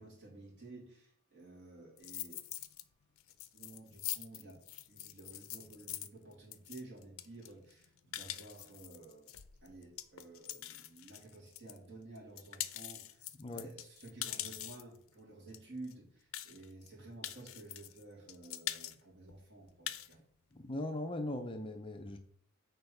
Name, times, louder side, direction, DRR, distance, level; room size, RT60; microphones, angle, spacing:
voice 1, 0.0-2.5 3.5-9.3 9.6-20.2, right 2 dB, 55° right, -4 dB, 2.9 m, -53 dB
sound 1, 2.0-2.8 3.2-11.8 12.2-15.0 15.5-15.6 15.8-15.9 16.3-16.9 17.2-18.0 18.3-19.0 19.3-19.4 19.7-20.1, left 13 dB, 70° left, 0.5 m, -43 dB
voice 2, 13.3-13.7 20.5-22.2, left 1 dB, 25° left, 6 dB, 0.5 m, -39 dB
6.8 x 4.3 x 5.4 m, 0.62 s
head